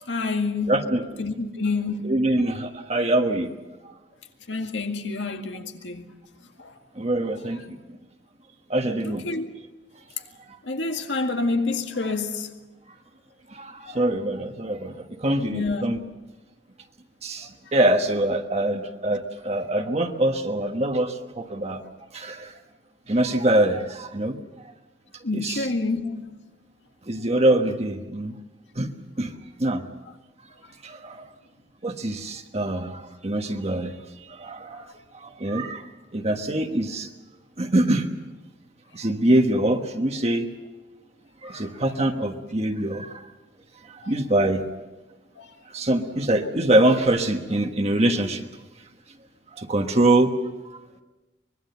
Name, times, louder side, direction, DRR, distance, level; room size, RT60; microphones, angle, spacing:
voice 1, 0.1-0.8 1.2-2.1 4.5-6.1 6.6-6.7 9.0-9.5 10.6-12.5 13.9-14.0 15.5-15.8 25.2-26.3 34.8-34.9 41.4-41.7 44.0-44.1 45.4-45.5, left 3 dB, 85° left, 2.0 m, -28 dB
voice 2, 0.7-1.1 2.0-3.5 3.8-3.9 6.9-7.8 8.7-9.2 12.0-12.1 13.5-16.0 17.2-21.8 22.1-22.5 23.1-24.4 25.3-25.7 27.1-28.4 28.7-28.9 29.2-29.3 29.6-29.8 30.8-31.2 31.8-33.9 34.3-34.9 35.1-35.8 36.1-37.1 37.6-38.1 38.9-40.5 41.4-43.3 43.8-44.6 45.7-48.4 49.5-50.3, right 1 dB, 35° right, 1.3 m, -24 dB
24.5 x 21.0 x 6.9 m
head